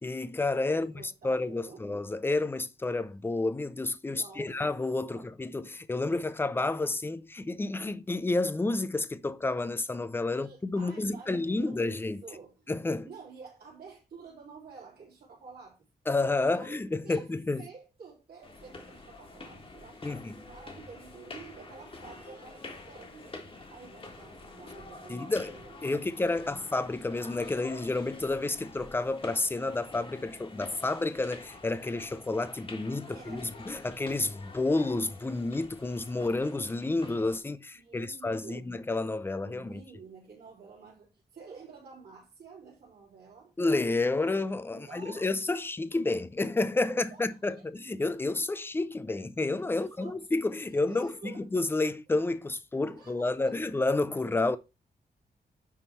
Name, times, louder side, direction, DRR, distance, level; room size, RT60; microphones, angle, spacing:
voice 1, 0.0-12.2 12.7-13.1 16.1-17.6 20.0-20.3 25.1-25.5 25.8-39.8 43.6-54.6, left 2 dB, 15° left, 0.4 m, -30 dB
voice 2, 0.7-1.8 4.0-4.6 5.1-5.3 10.3-12.7 13.0-15.8 16.5-17.3 17.6-26.1 26.4-26.6 33.1-33.5 36.1-36.2 37.7-38.7 39.4-43.5 44.7-45.3 46.9-47.2 47.5-47.6 49.7-50.2 50.7-51.5 52.9-53.6, right 5 dB, 75° right, 3.7 m, -50 dB
sound 1, 18.4-37.4, left 2 dB, 35° left, 1.5 m, -48 dB
9.9 x 3.7 x 4.4 m
wide cardioid pair, 175°, 17 cm